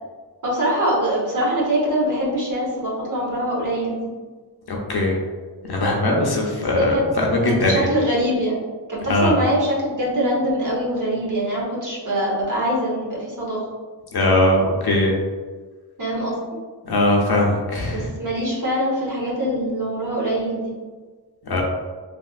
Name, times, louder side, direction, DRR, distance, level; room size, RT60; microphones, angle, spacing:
voice 1, 0.4-4.1 6.5-7.0 7.4-8.6 8.9-13.6 16.0-16.5 17.9-20.7, right 1 dB, 45° right, -5 dB, 1.0 m, -23 dB
voice 2, 4.7-5.2 5.7-7.7 9.1-9.3 14.1-15.1 16.8-18.1 21.4-21.6, left 1 dB, 60° left, -1 dB, 0.7 m, -20 dB
3.2 x 2.6 x 2.4 m, 1.4 s
wide cardioid pair, 110°, 44 cm